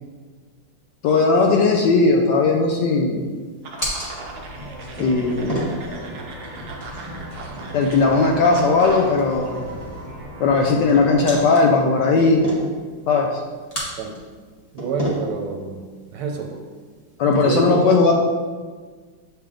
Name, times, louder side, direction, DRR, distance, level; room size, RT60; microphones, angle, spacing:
voice 1, 1.0-3.3 5.0-5.6 7.7-9.6 10.4-12.5 13.1-13.4 17.2-18.1, left 3 dB, 75° left, 1 dB, 1.0 m, -17 dB
sound 1, 1.8-17.2, equal, 20° left, 1.1 m, -35 dB
sound 2, 3.6-9.2, right 3 dB, 60° right, 1.1 m, -38 dB
sound 3, 4.2-11.4, right 1 dB, 40° right, 1.5 m, -37 dB
voice 2, 14.7-15.8 16.1-16.6 17.4-17.8, right 5 dB, 80° right, 3 dB, 1.5 m, -27 dB
8.5 x 3.4 x 3.7 m, 1.5 s
omnidirectional pair, 2.4 m